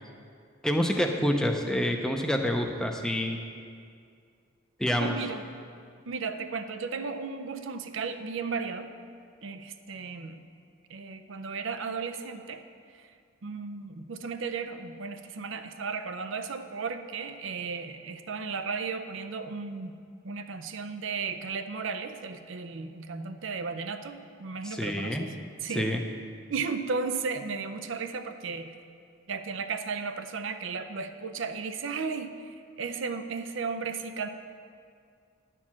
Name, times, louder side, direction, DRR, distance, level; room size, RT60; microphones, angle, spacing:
voice 1, 0.6-3.4 4.8-5.2 24.6-25.3 25.7-26.0, equal, 5° left, 3 dB, 0.6 m, -27 dB
voice 2, 5.0-5.5 6.1-8.9 9.4-10.4 10.9-12.6 13.4-19.9 20.2-25.3 25.6-25.9 26.5-28.7 29.3-34.3, right 5 dB, 65° right, 8 dB, 0.5 m, -35 dB
11.0 x 4.6 x 7.3 m, 2.3 s
head